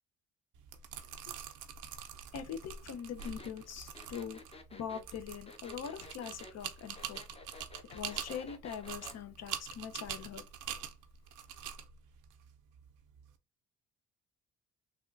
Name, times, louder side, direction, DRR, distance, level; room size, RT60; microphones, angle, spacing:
sound 1, 0.5-13.3, right 9 dB, 85° right, 0.7 m, -45 dB
voice 1, 2.3-4.4 4.7-7.2 7.9-10.4, left 8 dB, 60° left, 0.7 m, -42 dB
sound 2, 3.2-9.2, left 3 dB, 20° left, 0.7 m, -53 dB
3.4 x 2.3 x 2.5 m
cardioid pair, 90°, 30 cm